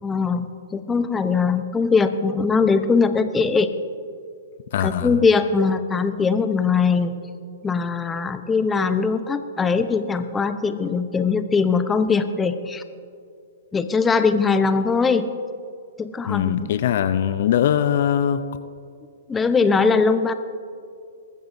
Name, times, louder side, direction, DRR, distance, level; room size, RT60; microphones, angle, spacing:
voice 1, 0.0-3.7 4.8-7.2 7.6-12.8 13.7-15.3 16.0-16.7 19.3-20.3, left 5 dB, 15° left, 10 dB, 0.7 m, -21 dB
voice 2, 4.7-5.2 16.3-18.4, left 9 dB, 55° left, 13 dB, 0.5 m, -21 dB
21.5 x 14.0 x 2.7 m, 2.3 s
hypercardioid pair, 120°, 0 cm